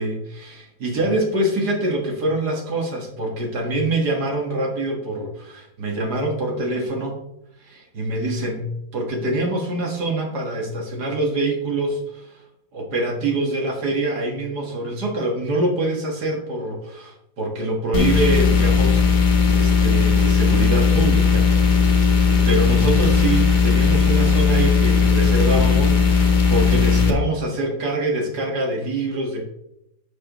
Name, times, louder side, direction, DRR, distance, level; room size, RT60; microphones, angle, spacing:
voice 1, 0.0-7.2 7.6-12.4 12.7-21.5 22.3-29.5, right 2 dB, 70° right, 0 dB, 2.2 m, -25 dB
sound 1, 17.9-27.1, left 5 dB, 35° left, 1.0 m, -17 dB
10.5 x 7.7 x 3.1 m, 0.82 s
omnidirectional pair, 1.8 m